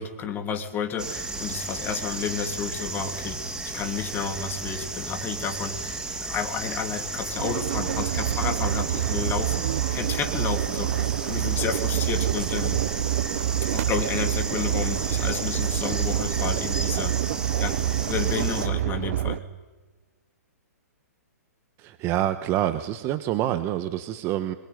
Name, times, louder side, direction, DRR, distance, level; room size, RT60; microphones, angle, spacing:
voice 1, 0.0-12.8 13.7-17.2 17.6-19.4, left 6 dB, 20° left, 5 dB, 3.1 m, -31 dB
sound 1, 1.0-18.7, right 3 dB, 10° right, 2.7 m, -34 dB
sound 2, 7.4-19.4, right 12 dB, 50° right, 0.9 m, -27 dB
voice 2, 21.8-24.5, right 12 dB, 30° right, 10 dB, 1.4 m, -27 dB
26.5 x 22.5 x 9.5 m, 1.2 s
hypercardioid pair, 130°, 9 cm